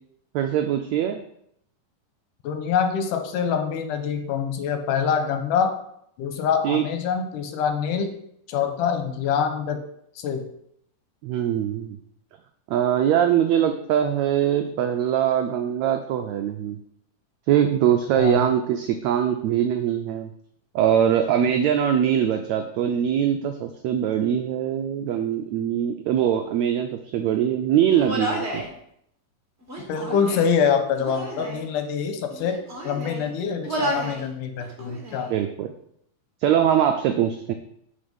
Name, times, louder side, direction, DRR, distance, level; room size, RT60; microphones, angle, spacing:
voice 1, 0.3-1.2 6.6-6.9 11.2-12.0 12.7-16.8 17.5-20.3 20.7-28.6 35.3-35.7 36.4-37.5, right 9 dB, 85° right, 6 dB, 1.5 m, -22 dB
voice 2, 2.4-5.7 6.2-8.1 8.5-9.8 10.2-10.4 18.2-18.4 29.9-35.3, left 7 dB, 80° left, 6 dB, 2.4 m, -25 dB
Human voice, 27.9-28.7 29.6-30.5 31.0-31.6 32.3-33.3 33.6-34.2 34.6-35.3, right 1 dB, 30° right, 1.2 m, -31 dB
8.6 x 4.9 x 5.3 m, 0.71 s
omnidirectional pair, 3.8 m